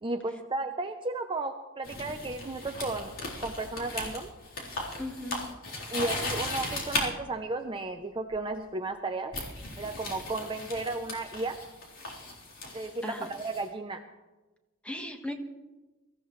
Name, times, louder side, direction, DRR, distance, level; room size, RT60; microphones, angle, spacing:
voice 1, 0.0-4.3 5.9-9.3 9.8-11.6 12.7-14.0, right 2 dB, 25° right, 5 dB, 0.6 m, -34 dB
sound 1, 1.8-7.1 8.3-8.6 9.3-13.6, left 2 dB, 65° left, 3.8 m, -37 dB
voice 2, 5.0-5.5 13.0-13.3 14.8-15.3, left 1 dB, 5° left, 4 dB, 1.3 m, -37 dB
23.0 x 15.0 x 3.2 m, 1.2 s
head